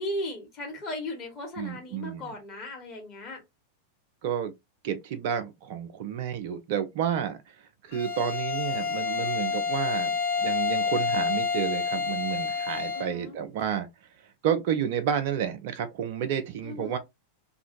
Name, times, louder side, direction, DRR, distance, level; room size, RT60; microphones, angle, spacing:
voice 1, 0.0-3.4 12.9-13.4 16.6-17.0, left 1 dB, 30° left, 1.4 m, -36 dB
voice 2, 1.6-2.3 4.2-4.5 4.8-7.4 7.8-13.9 14.4-17.0, right 9 dB, 50° right, 0.4 m, -30 dB
Bowed string instrument, 7.9-13.2, left 5 dB, 60° left, 0.9 m, -28 dB
2.6 x 2.4 x 2.7 m
figure-of-eight pair, 90°, 0 cm